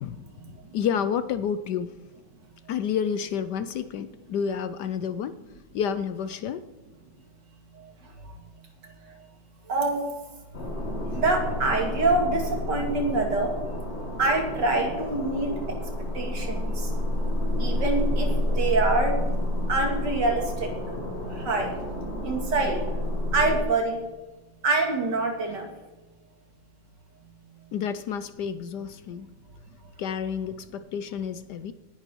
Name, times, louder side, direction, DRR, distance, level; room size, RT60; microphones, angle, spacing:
voice 1, 0.7-2.0 2.7-5.4 5.7-6.7 27.7-29.3 30.0-31.7, left 7 dB, 70° left, 13 dB, 1.1 m, -30 dB
voice 2, 9.7-10.0 11.1-13.6 14.2-15.8 16.1-16.9 17.6-19.2 19.7-20.7 21.4-21.8 22.2-22.8 23.3-24.1 24.6-25.7, right 3 dB, 60° right, 3 dB, 2.9 m, -25 dB
sound 1, 10.5-23.6, left 1 dB, 35° left, 2.2 m, -29 dB
18.5 x 10.5 x 4.5 m, 1.1 s
omnidirectional pair, 2.1 m